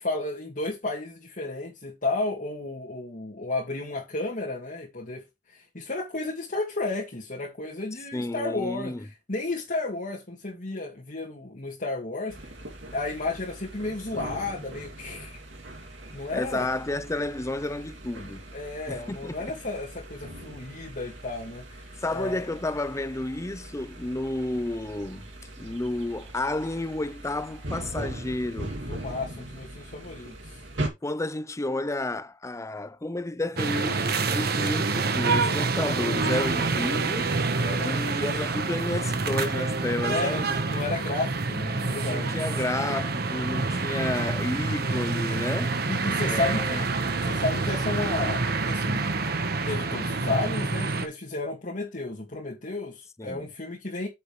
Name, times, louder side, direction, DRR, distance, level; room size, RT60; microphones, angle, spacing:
voice 1, 0.0-12.5 12.9-15.4 16.1-16.7 18.5-22.5 28.9-30.6 37.6-38.0 40.1-42.4 45.9-46.8 47.2-49.0 49.7-54.1, left 2 dB, 50° left, 2.1 m, -32 dB
voice 2, 8.1-9.0 16.3-18.4 18.9-19.4 22.0-25.3 25.6-28.7 31.0-37.3 37.8-40.5 42.1-45.8 46.3-46.8 53.2-53.5, left 2 dB, 15° left, 0.5 m, -31 dB
sound 1, 12.3-30.9, right 1 dB, 90° right, 2.6 m, -40 dB
sound 2, 33.6-51.1, right 3 dB, 60° right, 1.3 m, -27 dB
8.7 x 6.9 x 3.2 m
head